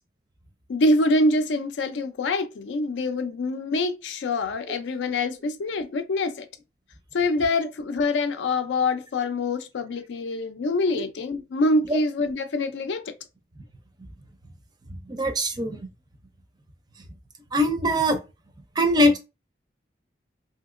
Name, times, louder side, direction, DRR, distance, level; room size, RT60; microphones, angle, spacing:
voice 1, 0.7-6.5 7.1-13.1, left 2 dB, 80° left, 0.4 m, -25 dB
voice 2, 15.1-15.8 17.5-18.2 18.8-19.2, equal, 25° right, 0.4 m, -21 dB
2.8 x 2.7 x 2.4 m
head